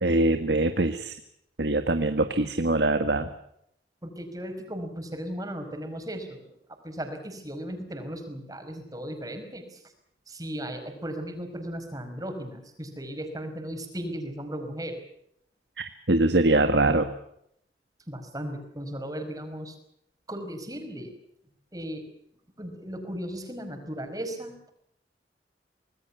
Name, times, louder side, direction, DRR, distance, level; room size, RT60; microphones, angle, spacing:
voice 1, 0.0-1.2 1.6-3.3 15.8-17.1, right 2 dB, 75° right, 8 dB, 1.6 m, -23 dB
voice 2, 4.0-6.6 6.8-9.9 10.3-15.0 18.1-19.8 20.3-21.1 21.7-22.1 22.6-24.5, equal, 20° right, 6 dB, 5.1 m, -36 dB
26.0 x 19.5 x 7.1 m, 0.74 s
head